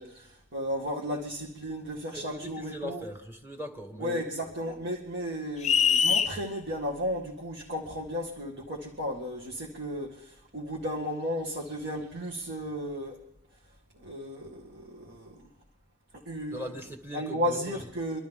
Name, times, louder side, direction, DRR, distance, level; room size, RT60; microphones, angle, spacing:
voice 1, 0.0-3.0 4.0-13.2 14.0-15.5 16.1-16.6 17.1-18.2, equal, 60° right, 2.0 m, -34 dB
voice 2, 2.1-4.3 16.5-17.9, equal, 10° right, 2.0 m, -40 dB
sound 1, 5.6-6.3, left 7 dB, 35° left, 0.6 m, -22 dB
24.5 x 13.0 x 3.6 m
head